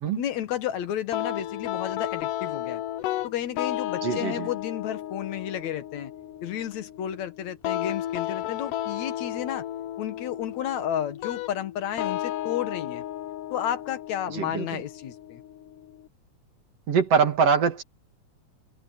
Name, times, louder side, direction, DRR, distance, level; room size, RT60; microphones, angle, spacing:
voice 1, 0.1-2.8 3.2-6.1 6.4-9.6 10.0-13.0 13.5-15.4, left 10 dB, 65° left, 2.4 m, -32 dB
sound 1, 1.1-16.1, left 12 dB, 90° left, 2.4 m, -34 dB
voice 2, 4.0-4.5 14.3-14.8 16.9-17.8, right 6 dB, 50° right, 3.4 m, -23 dB
open air
omnidirectional pair, 3.6 m